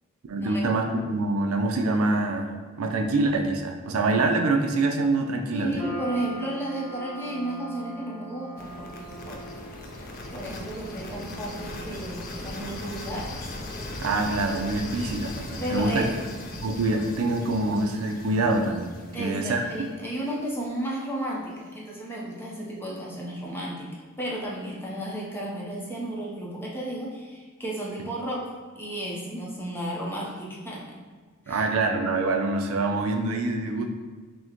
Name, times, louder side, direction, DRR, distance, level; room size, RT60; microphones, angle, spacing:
voice 1, 0.3-5.8 14.0-16.0 16.6-18.9 19.2-19.6 31.5-33.9, right 2 dB, 70° right, 3 dB, 0.4 m, -25 dB
voice 2, 5.5-9.5 10.3-13.3 15.6-16.5 19.1-23.9 24.2-28.5 28.8-30.8 31.5-31.6, right 1 dB, 10° left, -5 dB, 0.7 m, -33 dB
sound 1, 5.8-20.2, right 2 dB, 10° right, 1.1 m, -44 dB
sound 2, 8.6-20.5, left 2 dB, 40° left, 0.4 m, -39 dB
6.1 x 2.1 x 2.9 m, 1.5 s
head